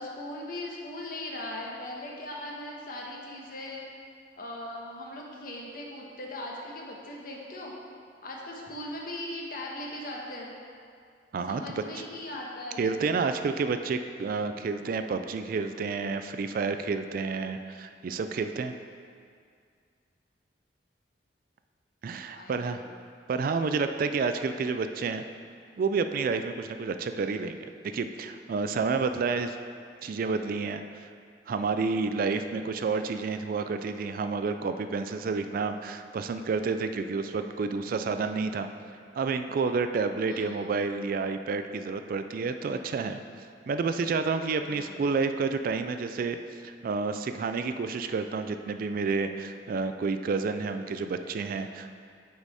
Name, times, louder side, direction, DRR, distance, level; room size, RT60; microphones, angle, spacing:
voice 1, 0.0-3.8 4.4-7.7 8.2-10.5 11.4-12.8 22.3-22.9 40.2-40.7 44.6-45.0, left 1 dB, 55° left, -2 dB, 1.1 m, -39 dB
voice 2, 11.3-11.8 12.8-18.8 22.0-22.8 23.3-25.2 25.8-27.6 27.9-29.6 30.0-31.1 31.5-38.7 39.1-43.2 43.7-46.4 46.6-52.0, right 4 dB, 55° right, 8 dB, 0.3 m, -30 dB
8.4 x 4.1 x 4.8 m, 2.2 s
head